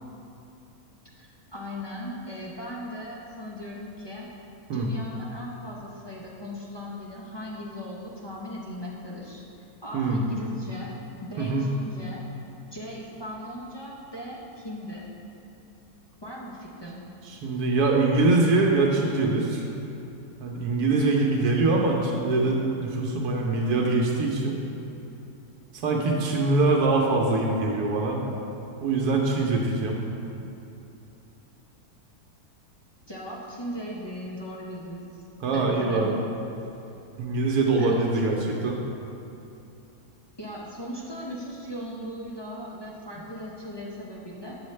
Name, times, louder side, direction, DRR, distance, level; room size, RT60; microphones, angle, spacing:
voice 1, 1.1-4.3 4.7-9.4 9.8-12.3 12.7-15.1 16.2-17.0 33.1-35.1 35.5-36.1 37.8-38.0 40.4-44.6, equal, 30° left, -5 dB, 0.4 m, -38 dB
voice 2, 11.4-11.7 17.2-19.6 20.4-24.6 25.8-28.2 28.8-30.0 35.4-36.1 37.2-38.8, right 3 dB, 90° right, -1 dB, 1.2 m, -23 dB
8.5 x 6.4 x 3.2 m, 2.9 s
omnidirectional pair, 1.6 m